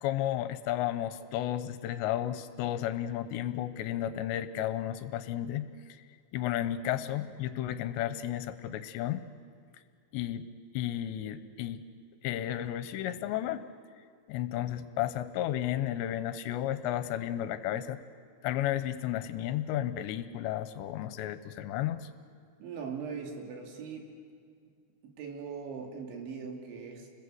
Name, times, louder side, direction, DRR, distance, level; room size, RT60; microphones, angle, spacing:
voice 1, 0.0-6.0 6.3-9.2 10.1-10.5 10.7-11.8 12.2-13.6 14.3-18.0 18.4-22.1, left 12 dB, 80° left, 12 dB, 2.9 m, -33 dB
voice 2, 22.6-24.1 25.0-27.1, right 5 dB, 80° right, 2 dB, 4.9 m, -40 dB
28.5 x 21.0 x 7.8 m, 2.2 s
omnidirectional pair, 5.3 m